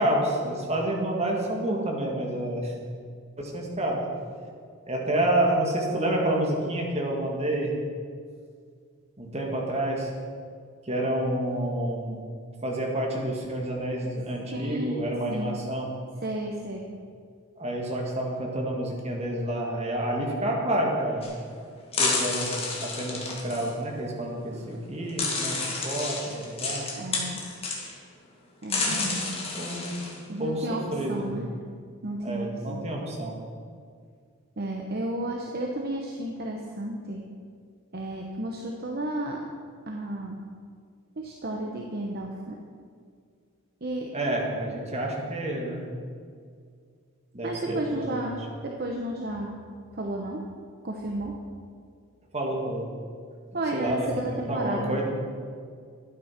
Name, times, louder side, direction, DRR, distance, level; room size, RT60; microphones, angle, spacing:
voice 1, 0.0-2.7 3.4-4.0 4.9-7.7 9.2-10.1 10.8-12.2 12.6-15.9 17.6-21.3 22.0-26.9 28.8-30.0 30.4-30.7 30.9-31.3 32.2-33.4 44.1-45.9 47.3-48.3 52.3-52.9 53.7-55.0, right 1 dB, 30° right, -1 dB, 2.0 m, -29 dB
voice 2, 14.5-15.5 16.2-16.9 27.0-27.4 28.6-29.2 30.3-30.8 31.1-31.5 32.0-32.8 34.6-37.3 37.9-39.4 39.9-40.4 41.2-42.6 43.8-44.1 47.4-49.6 49.9-50.4 50.8-51.4 53.5-55.0, right 1 dB, 45° right, 1 dB, 0.9 m, -32 dB
sound 1, 21.2-21.3 21.9-23.7 24.6-24.7 25.2-27.9 28.6-30.2, left 3 dB, 25° left, 1.9 m, -30 dB
12.0 x 9.3 x 5.9 m, 2.2 s
head